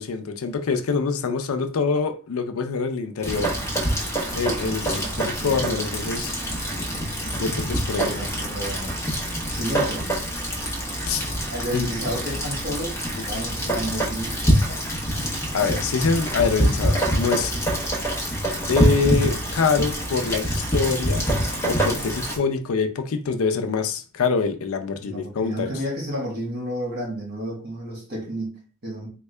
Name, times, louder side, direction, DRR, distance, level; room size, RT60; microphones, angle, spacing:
voice 1, 0.0-3.5 4.3-5.0 5.4-6.3 7.3-8.1 11.0-11.2 11.7-11.9 15.5-17.5 18.7-21.3 21.6-25.7, left 5 dB, 70° left, 0.5 m, -25 dB
Rain, 3.2-22.4, equal, 15° left, 0.8 m, -25 dB
voice 2, 4.6-5.9 6.7-7.0 7.9-8.9 9.5-10.0 11.5-13.0 13.3-14.8 25.0-29.1, equal, 45° right, 1.5 m, -32 dB
3.5 x 2.1 x 3.2 m
head